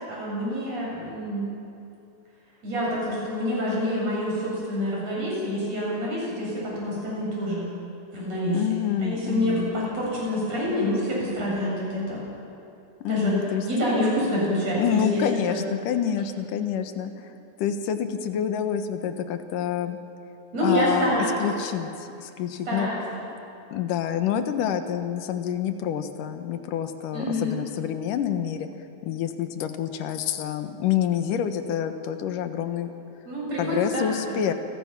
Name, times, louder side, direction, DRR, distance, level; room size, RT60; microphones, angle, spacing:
voice 1, 0.1-1.4 2.6-7.7 8.1-8.6 9.0-12.2 13.1-13.4 13.6-15.6 20.5-21.3 22.7-23.0 27.1-27.5 33.2-34.4, equal, 55° right, -5 dB, 8.8 m, -27 dB
voice 2, 8.5-9.8 13.0-13.6 14.8-20.0 20.6-22.9 23.7-28.7 29.0-32.9 33.6-34.5, left 9 dB, 85° left, 8 dB, 2.8 m, -27 dB
29.5 x 23.0 x 6.0 m, 2.7 s
omnidirectional pair, 3.7 m